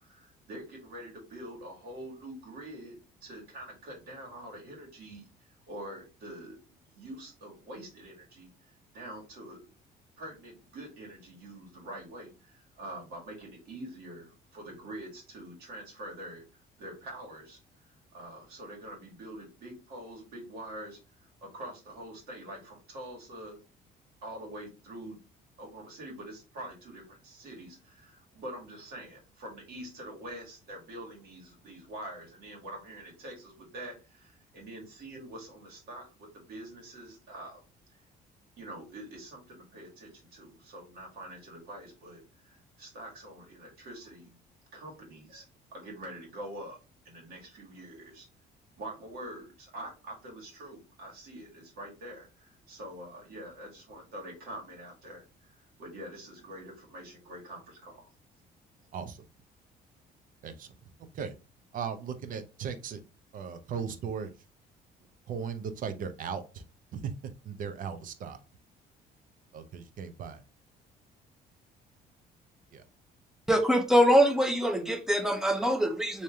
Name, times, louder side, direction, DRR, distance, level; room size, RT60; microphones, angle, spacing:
voice 1, 0.0-3.0 3.2-5.2 5.7-8.5 8.9-9.7 10.2-16.4 16.8-17.6 18.1-23.6 24.2-25.2 25.6-37.6 38.6-44.4 44.7-45.4 45.7-46.8 47.1-48.3 48.8-58.1, right 1 dB, 70° right, 1.8 m, -45 dB
voice 2, 58.9-59.2 60.4-60.7 61.1-61.4 61.7-63.0 63.3-64.3 65.3-66.6 66.9-68.4 69.5-70.4 72.7-72.8, right 6 dB, 55° right, 0.6 m, -37 dB
voice 3, 73.5-76.2, equal, 5° right, 0.6 m, -24 dB
3.2 x 2.8 x 3.4 m
cardioid pair, 110°, 17 cm